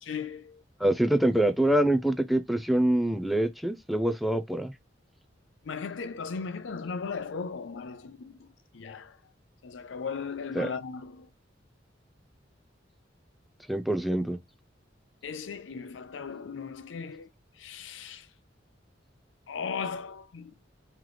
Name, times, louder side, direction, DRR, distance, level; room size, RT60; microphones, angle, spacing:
voice 1, 0.0-0.6 5.6-8.5 8.7-9.2 9.6-11.3 15.2-17.3 17.6-18.3 19.5-20.7, left 5 dB, 75° left, 0.5 m, -37 dB
voice 2, 0.8-4.7 10.6-10.7 13.7-14.4, right 1 dB, ahead, 0.4 m, -25 dB
3.1 x 3.0 x 3.8 m
head